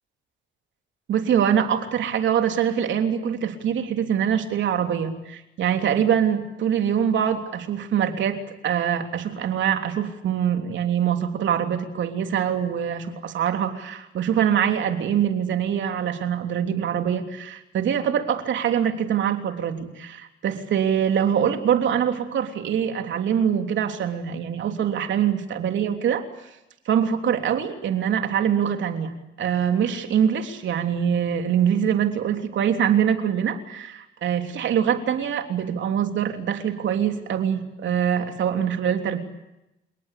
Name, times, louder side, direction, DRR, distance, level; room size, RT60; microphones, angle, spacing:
voice 1, 1.1-26.2 26.8-39.2, right 8 dB, 70° right, 6 dB, 3.3 m, -24 dB
29.5 x 18.5 x 8.4 m, 0.90 s
cardioid pair, 90°, 20 cm